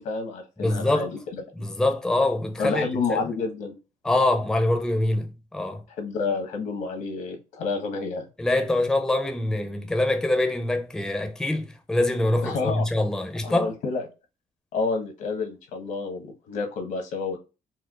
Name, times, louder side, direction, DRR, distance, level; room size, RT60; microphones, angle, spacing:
voice 1, 0.0-1.4 2.6-3.7 6.0-8.2 12.4-12.9 13.4-14.0 14.7-17.4, left 4 dB, 85° left, 1.0 m, -29 dB
voice 2, 0.6-1.1 1.6-3.2 4.0-5.8 8.4-13.7, left 2 dB, 5° left, 0.4 m, -24 dB
4.3 x 2.2 x 2.4 m
cardioid pair, 165°, 13 cm